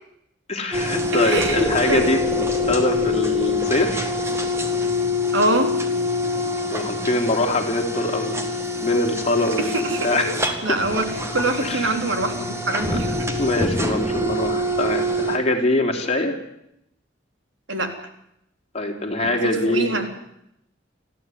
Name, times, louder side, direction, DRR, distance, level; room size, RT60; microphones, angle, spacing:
voice 1, 0.5-4.1 6.4-8.5 8.8-10.4 11.6-11.9 12.9-13.0 13.4-16.4 18.7-20.0, left 1 dB, 35° left, 2 dB, 3.3 m, -23 dB
sound 1, 0.7-15.4, left 2 dB, 15° right, 2.1 m, -25 dB
voice 2, 1.1-2.1 5.3-5.7 9.6-10.3 10.6-13.4 17.7-17.9 19.2-19.4 19.6-20.1, right 2 dB, 85° right, 5 dB, 3.5 m, -24 dB
sound 2, 1.3-5.5, equal, 10° left, 3.1 m, -30 dB
25.5 x 15.0 x 9.5 m, 0.81 s
head